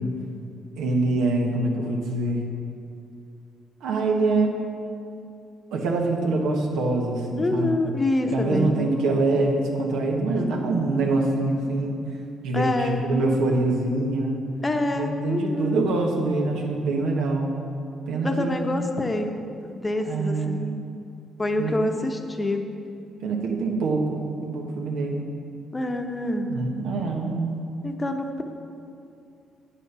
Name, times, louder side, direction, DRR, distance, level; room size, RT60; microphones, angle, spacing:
voice 1, 0.8-2.5 3.8-4.5 5.7-7.7 8.3-12.0 12.4-14.4 14.9-17.5 18.1-18.6 20.0-20.6 21.6-21.8 23.2-25.2 26.5-27.6, right 2 dB, 90° right, 0 dB, 1.3 m, -24 dB
voice 2, 7.4-8.9 12.5-13.0 14.6-15.9 18.2-19.3 19.6-20.8 21.4-22.7 25.7-26.5 27.8-28.4, left 2 dB, 20° left, 5 dB, 0.9 m, -26 dB
8.6 x 7.4 x 5.6 m, 2.5 s
cardioid pair, 90°, 0 cm